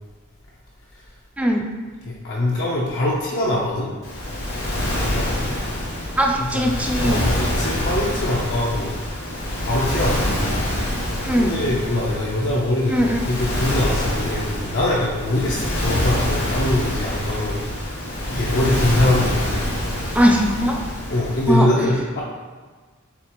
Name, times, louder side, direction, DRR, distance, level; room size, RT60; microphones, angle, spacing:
voice 1, 2.0-3.9 5.0-5.4 6.4-6.7 7.0-8.9 9.6-10.5 11.4-17.7 18.3-19.7 21.1-22.2, left 1 dB, 60° left, -5 dB, 0.7 m, -23 dB
Waves surf, 4.0-21.5, left 1 dB, 85° left, 1.5 m, -26 dB
voice 2, 6.2-7.2 11.2-11.5 12.9-13.3 20.1-20.9 21.5-21.7, equal, 5° right, 1 dB, 0.4 m, -19 dB
7.1 x 2.5 x 3.0 m, 1.4 s
head